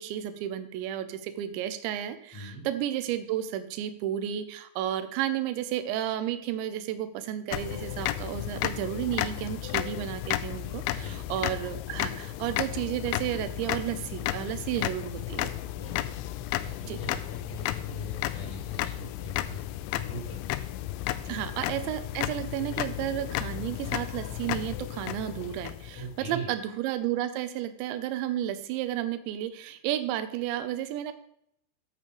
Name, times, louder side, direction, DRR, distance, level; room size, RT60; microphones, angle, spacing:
voice 1, 0.0-15.5 16.9-17.0 21.3-31.1, right 11 dB, 85° right, 10 dB, 2.9 m, -32 dB
voice 2, 2.3-2.6 10.9-11.2 15.7-16.0 16.6-19.6 19.9-20.6 21.2-21.4 25.9-26.5, equal, 35° left, -4 dB, 5.1 m, -41 dB
sound 1, 7.5-26.3, left 14 dB, 85° left, 2.7 m, -33 dB
11.0 x 8.7 x 3.2 m, 0.73 s
omnidirectional pair, 5.6 m